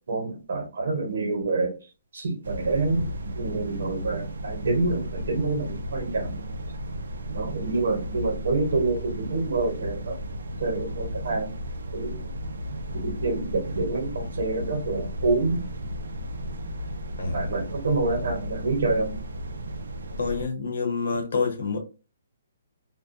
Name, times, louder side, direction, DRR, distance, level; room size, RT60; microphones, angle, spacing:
voice 1, 0.1-1.7 2.1-3.1 3.3-6.4 7.3-10.2 10.6-11.5 11.9-12.2 13.0-15.9 17.3-19.2, right 3 dB, 65° right, 0.9 m, -27 dB
sound 1, 2.4-20.5, equal, 85° right, 0.4 m, -34 dB
voice 2, 17.2-17.5 20.2-21.8, left 4 dB, 70° left, 0.8 m, -27 dB
2.3 x 2.2 x 2.5 m
hypercardioid pair, 170°, 0 cm